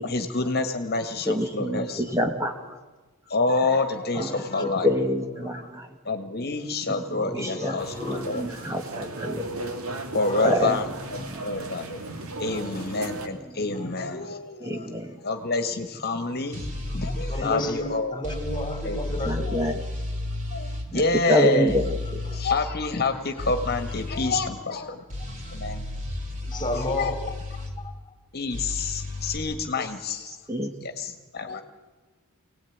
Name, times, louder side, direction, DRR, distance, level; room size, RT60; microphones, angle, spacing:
voice 1, 0.0-2.0 3.3-4.9 6.1-8.5 10.1-10.8 11.1-12.0 12.4-16.6 16.9-18.2 18.8-19.0 19.5-19.6 20.5-21.7 22.3-25.0 25.5-25.8 26.7-27.1 28.3-30.4 30.8-31.6, left 3 dB, 45° left, 7 dB, 1.7 m, -28 dB
voice 2, 1.2-2.8 4.1-6.0 6.8-9.6 10.4-10.8 11.2-11.7 13.4-13.9 14.6-15.2 17.3-17.5 19.2-19.8 20.9-22.3 30.5-30.7, equal, 15° right, 5 dB, 1.4 m, -28 dB
voice 3, 1.8-2.3 4.2-4.7 5.6-5.7 6.9-8.8 10.2-10.7 11.4-11.5 12.3-12.6 17.3-19.6 22.3-22.4 25.2-25.6 26.4-27.3 27.8-28.1, left 1 dB, 20° left, 7 dB, 3.1 m, -33 dB
sound 1, 7.8-13.3, right 2 dB, 70° right, 2.5 m, -36 dB
sound 2, 16.5-17.4 18.2-20.9 21.7-22.6 23.4-24.3 25.1-27.7 28.5-29.4, left 2 dB, 35° right, 4.3 m, -32 dB
25.0 x 18.0 x 9.4 m, 1.3 s
head